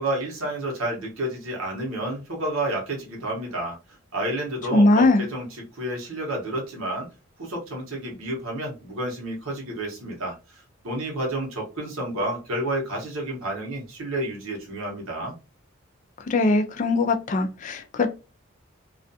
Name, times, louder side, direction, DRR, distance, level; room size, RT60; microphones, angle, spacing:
voice 1, 0.0-3.8 4.1-7.1 7.4-15.4, right 1 dB, 90° right, 0.9 m, -30 dB
voice 2, 4.7-5.2 16.3-18.1, left 2 dB, 35° left, 0.3 m, -20 dB
2.4 x 2.3 x 2.6 m
head